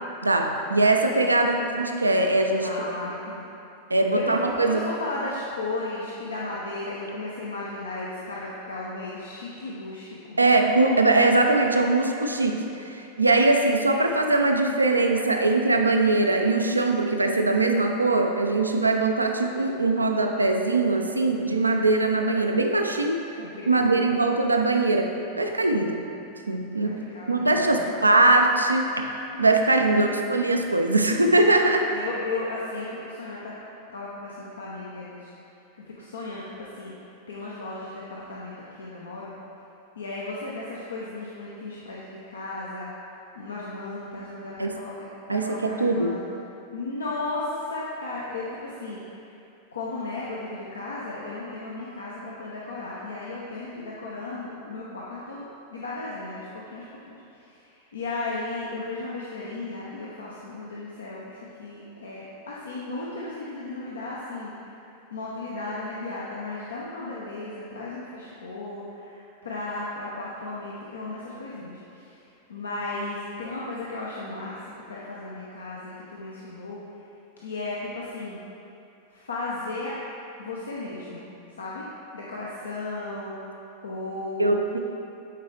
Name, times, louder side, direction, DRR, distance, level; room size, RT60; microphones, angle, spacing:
voice 1, 0.2-1.5 2.0-2.7 3.9-4.8 10.4-23.2 23.7-26.0 26.5-29.0 29.4-31.9 44.6-44.7 45.3-46.2 84.4-84.8, right 2 dB, 80° right, 4 dB, 0.5 m, -21 dB
voice 2, 2.6-3.5 4.1-10.4 23.4-24.3 26.8-27.9 29.3-29.5 30.0-30.2 31.9-33.6 33.9-35.3 36.0-39.3 40.0-42.9 43.3-44.9 45.3-46.2 46.7-49.3 49.7-56.9 57.3-64.8 65.1-72.2 72.5-74.6 74.9-76.8 77.4-78.4 79.1-80.0 80.4-81.9 82.1-84.5, left 2 dB, 70° left, -6 dB, 0.7 m, -35 dB
9.2 x 4.5 x 3.2 m, 2.7 s
figure-of-eight pair, 90°, 0 cm